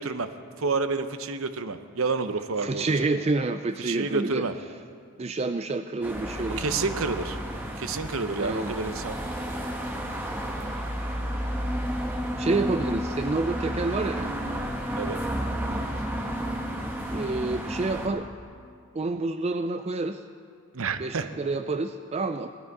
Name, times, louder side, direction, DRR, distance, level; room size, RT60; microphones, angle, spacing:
voice 1, 0.0-3.1 3.8-4.5 6.5-7.4 7.8-9.2 12.8-12.9 15.0-15.2 20.7-21.3, right 4 dB, 70° right, 10 dB, 0.8 m, -29 dB
voice 2, 2.6-4.5 5.2-6.6 8.4-8.7 12.4-14.4 17.1-18.3 18.9-20.2 21.0-22.5, right 3 dB, 30° right, 8 dB, 0.3 m, -28 dB
sound 1, 6.0-18.1, equal, 10° right, 1.2 m, -31 dB
18.5 x 12.0 x 4.8 m, 2.2 s
head